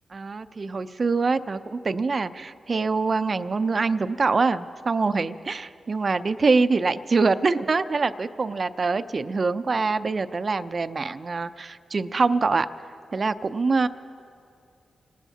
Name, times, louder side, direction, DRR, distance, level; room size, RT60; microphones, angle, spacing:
voice 1, 0.1-12.7 13.1-13.9, right 4 dB, 50° right, 12 dB, 0.5 m, -24 dB
26.5 x 18.5 x 2.8 m, 2.4 s
cardioid pair, 45°, 0 cm